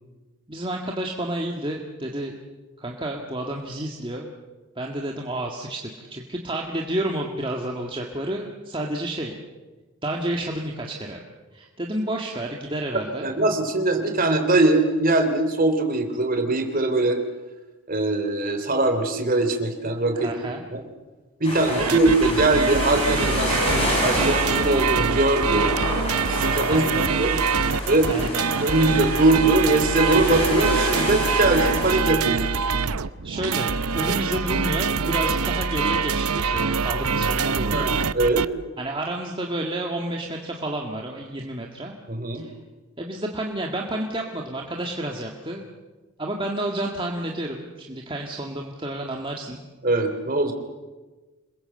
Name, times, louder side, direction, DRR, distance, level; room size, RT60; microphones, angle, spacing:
voice 1, 0.5-2.4 2.8-4.3 4.8-9.4 10.0-11.2 11.5-13.3 20.1-20.7 21.7-22.0 26.7-27.1 28.1-28.5 33.0-37.9 38.8-41.9 42.3-42.5 43.0-45.6 46.2-49.6, right 1 dB, 20° right, 0 dB, 1.8 m, -30 dB
voice 2, 13.2-17.2 17.9-20.3 20.7-20.8 21.4-25.8 26.2-27.4 27.9-28.1 28.6-32.4 34.1-34.2 37.7-38.5 42.1-42.4 49.8-50.5, right 2 dB, 40° right, 6 dB, 3.2 m, -21 dB
sound 1, 21.4-31.9, left 1 dB, 25° left, 7.7 m, -29 dB
sound 2, 21.8-38.5, right 5 dB, 85° right, 0.7 m, -24 dB
27.0 x 21.5 x 7.9 m, 1.2 s
head